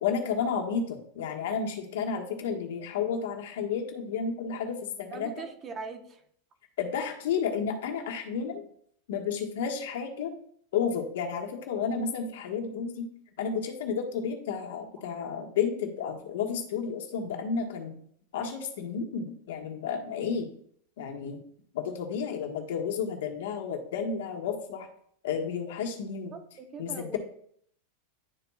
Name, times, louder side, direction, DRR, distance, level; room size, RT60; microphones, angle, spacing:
voice 1, 0.0-5.3 6.8-8.6 9.1-10.3 10.7-13.1 13.4-18.0 18.3-20.5 21.0-21.4 21.7-24.9 25.2-26.4 26.8-27.2, left 6 dB, 75° left, 2 dB, 1.4 m, -31 dB
voice 2, 5.1-6.2 26.3-27.2, right 5 dB, 25° right, 5 dB, 1.0 m, -41 dB
11.5 x 4.1 x 2.4 m, 0.64 s
supercardioid pair, 145°, 0 cm